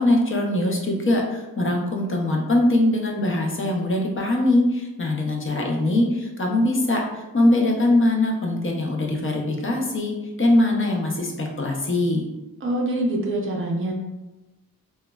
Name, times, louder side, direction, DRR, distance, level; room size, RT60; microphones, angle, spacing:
voice 1, 0.0-12.2, left 1 dB, 35° left, 0 dB, 0.5 m, -22 dB
voice 2, 12.6-13.9, right 1 dB, 35° right, -1 dB, 0.5 m, -25 dB
3.0 x 2.2 x 2.2 m, 1.1 s
wide cardioid pair, 90°, 37 cm